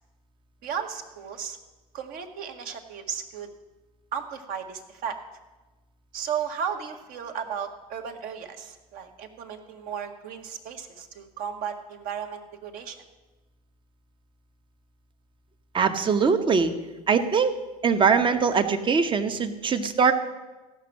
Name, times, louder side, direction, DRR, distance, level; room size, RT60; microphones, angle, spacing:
voice 1, 0.6-1.6 1.9-3.5 4.1-5.2 6.1-13.0, right 7 dB, 50° right, 5 dB, 1.3 m, -35 dB
voice 2, 15.7-16.7 17.1-17.5 17.8-20.1, right 5 dB, 25° right, 8 dB, 1.0 m, -22 dB
15.0 x 5.9 x 7.3 m, 1.2 s
figure-of-eight pair, 70°, 20 cm